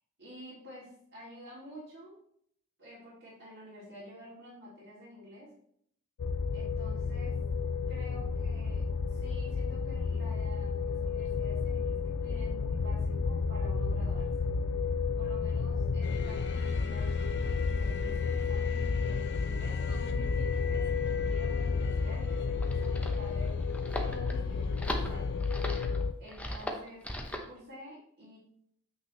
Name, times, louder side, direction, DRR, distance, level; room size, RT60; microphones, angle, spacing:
voice 1, 0.2-2.2 2.8-5.5 6.5-7.3 7.9-14.5 15.1-25.3 26.2-28.4, equal, 55° right, -11 dB, 2.7 m, -50 dB
sound 1, 6.2-26.1, left 5 dB, 85° left, 0.5 m, -31 dB
sound 2, 16.0-25.8, left 4 dB, 55° left, 0.8 m, -46 dB
sound 3, 22.3-27.5, equal, 5° left, 0.8 m, -39 dB
8.0 x 5.9 x 3.2 m, 0.68 s
head